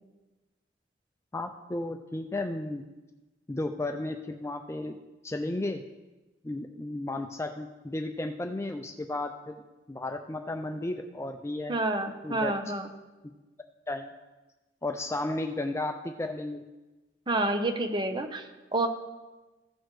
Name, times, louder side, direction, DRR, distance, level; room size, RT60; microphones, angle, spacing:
voice 1, 1.3-2.8 3.5-5.0 5.2-5.8 6.4-9.6 9.9-11.8 12.2-12.6 13.9-14.1 14.8-16.6, left 2 dB, 15° left, 6 dB, 0.4 m, -33 dB
voice 2, 11.7-12.9 17.3-18.9, right 2 dB, 25° right, 6 dB, 0.8 m, -29 dB
16.0 x 6.3 x 3.2 m, 1.1 s
head